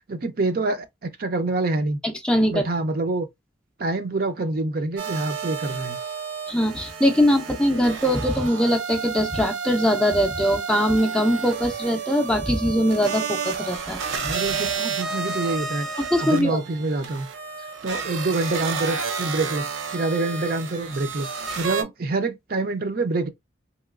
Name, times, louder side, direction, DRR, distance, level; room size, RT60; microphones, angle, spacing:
voice 1, 0.1-2.0 2.5-3.3 3.8-6.0 14.2-15.9 16.2-17.3 17.8-21.3 21.6-23.3, right 2 dB, 50° right, 0.5 m, -26 dB
voice 2, 2.0-2.6 6.5-14.0 16.1-16.6, equal, 5° left, 0.4 m, -21 dB
sound 1, 5.0-21.8, right 5 dB, 90° right, 0.6 m, -31 dB
3.1 x 2.9 x 2.4 m
head